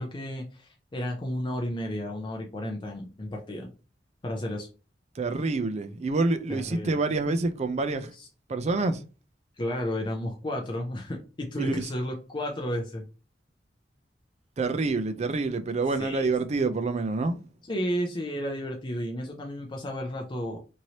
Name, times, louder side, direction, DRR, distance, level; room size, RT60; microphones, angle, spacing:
voice 1, 0.0-3.7 4.2-4.7 6.5-7.0 8.1-8.3 9.6-13.0 16.0-16.3 17.6-20.6, equal, 25° left, 0.5 m, -32 dB
voice 2, 5.2-8.1 8.5-9.0 11.6-11.9 14.6-17.4, right 3 dB, 40° right, 0.4 m, -27 dB
3.1 x 2.7 x 2.8 m
head